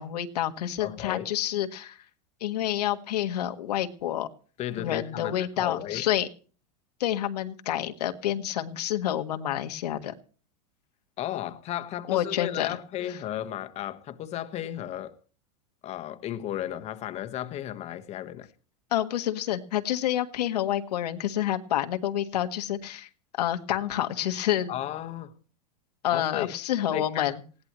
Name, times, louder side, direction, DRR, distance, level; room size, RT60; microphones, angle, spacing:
voice 1, 0.0-2.0 2.4-4.3 4.8-6.3 7.0-10.1 12.1-12.7 18.9-23.1 23.4-24.7 26.0-27.4, left 12 dB, 90° left, 1.7 m, -28 dB
voice 2, 0.8-1.3 4.6-6.0 11.2-15.2 15.8-18.5 24.7-25.4 26.1-26.5 26.9-27.3, left 12 dB, 35° left, 1.4 m, -34 dB
20.0 x 16.5 x 3.1 m
supercardioid pair, 140°, 20 cm